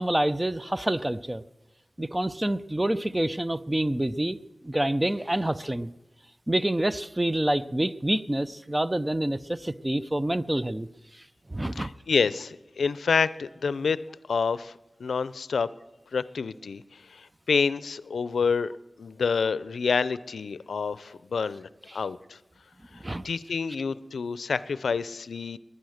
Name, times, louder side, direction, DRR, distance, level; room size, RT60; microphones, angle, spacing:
voice 1, 0.0-1.4 2.0-4.4 4.6-5.9 6.5-10.9 11.5-11.9 23.0-23.2, right 1 dB, 15° right, 15 dB, 0.5 m, -27 dB
voice 2, 11.8-14.0 14.3-14.7 15.0-15.7 16.1-16.8 17.1-18.7 19.0-22.4 23.2-25.6, left 5 dB, 85° left, 17 dB, 0.5 m, -28 dB
21.0 x 9.9 x 6.5 m, 1.0 s
wide cardioid pair, 70°, 0 cm